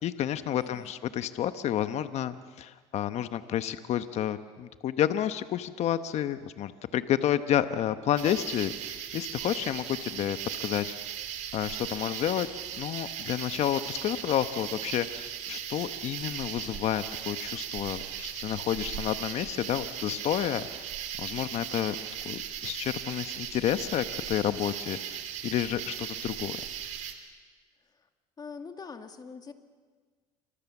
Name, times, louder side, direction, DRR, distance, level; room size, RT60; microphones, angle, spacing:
voice 1, 0.0-11.0 11.5-12.5 12.8-20.9 21.2-22.0 22.2-26.6, left 11 dB, 55° left, 11 dB, 1.0 m, -30 dB
voice 2, 0.5-1.2 27.8-28.1 28.4-29.5, left 5 dB, 30° left, 7 dB, 2.3 m, -44 dB
sound 1, 8.2-27.1, right 10 dB, 65° right, 3.2 m, -38 dB
28.0 x 25.0 x 7.2 m, 1.4 s
supercardioid pair, 100°, 13 cm